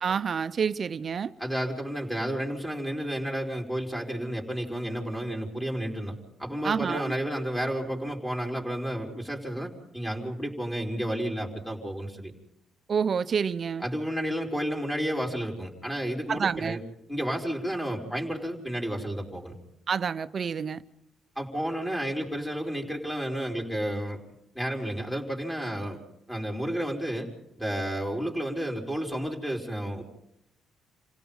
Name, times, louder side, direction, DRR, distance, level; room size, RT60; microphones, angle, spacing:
voice 1, 0.0-1.3 6.6-7.0 12.9-13.8 16.3-16.8 19.9-20.8, right 6 dB, 45° right, 0.8 m, -28 dB
voice 2, 1.4-12.3 13.8-16.8 17.1-19.6 21.4-24.2 24.5-26.0 26.3-27.3 27.6-30.0, equal, 10° left, 4.5 m, -31 dB
28.0 x 17.0 x 5.5 m
cardioid pair, 90°, 0 cm